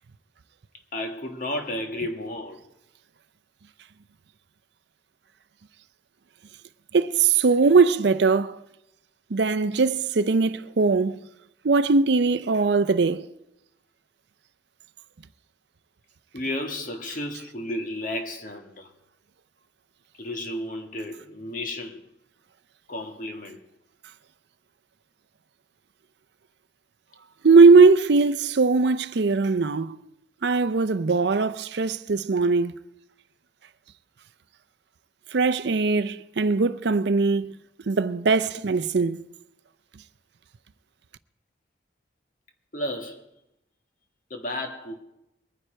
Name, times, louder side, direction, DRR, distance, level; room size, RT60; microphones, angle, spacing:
voice 1, 0.9-2.6 16.3-18.9 20.2-22.0 22.9-23.6 42.7-43.2 44.3-45.0, left 1 dB, 45° left, 1.5 m, -32 dB
voice 2, 6.9-8.6 9.3-11.2 11.6-13.3 27.4-30.0 30.4-32.8 35.3-37.5 37.9-39.2, right 4 dB, 65° right, 0.5 m, -20 dB
22.0 x 9.9 x 4.4 m
head